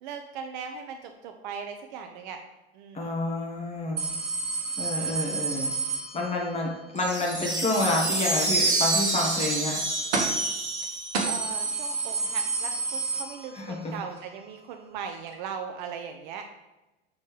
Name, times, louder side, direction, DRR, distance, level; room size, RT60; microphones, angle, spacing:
voice 1, 0.0-2.4 2.7-3.2 11.2-16.4, right 7 dB, 45° right, 5 dB, 0.6 m, -39 dB
voice 2, 2.9-4.0 4.8-5.7 6.1-9.7 13.5-13.8, left 2 dB, 20° left, -1 dB, 1.5 m, -28 dB
sound 1, 4.0-6.7 10.1-10.5 10.8-10.9 11.1-13.9 14.2-14.3 15.3-15.4, right 4 dB, 65° right, 1.1 m, -30 dB
sound 2, 7.0-11.7, right 2 dB, 85° right, 1.0 m, -27 dB
7.0 x 4.2 x 3.3 m, 1.0 s
figure-of-eight pair, 80°, 33 cm